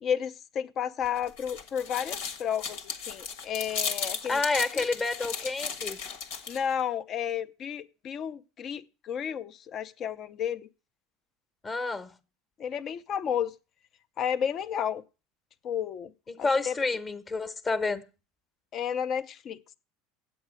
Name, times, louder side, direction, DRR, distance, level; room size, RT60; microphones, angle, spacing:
voice 1, 0.0-2.8 3.1-4.4 4.7-4.8 6.5-10.7 12.6-13.5 14.2-15.0 15.6-16.1 16.4-16.7 18.7-19.6, left 8 dB, 45° left, 0.6 m, -32 dB
sound 1, 1.0-6.7, left 6 dB, 85° left, 1.4 m, -36 dB
voice 2, 4.2-6.0 11.6-12.1 16.3-18.0, left 3 dB, 25° left, 1.1 m, -29 dB
8.9 x 7.9 x 6.2 m
supercardioid pair, 110°, 0 cm